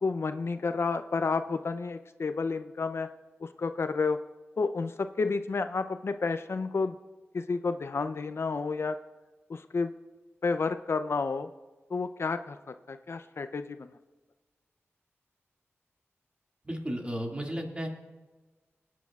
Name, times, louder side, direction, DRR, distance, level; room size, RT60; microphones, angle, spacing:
voice 1, 0.0-3.1 3.4-4.2 4.6-6.9 7.3-9.0 9.5-9.9 10.4-11.5 11.9-13.9, left 4 dB, 60° left, 10 dB, 0.5 m, -30 dB
voice 2, 16.6-17.9, equal, 25° right, 1 dB, 2.0 m, -34 dB
22.0 x 9.3 x 2.4 m, 1.3 s
wide cardioid pair, 65°, 5 cm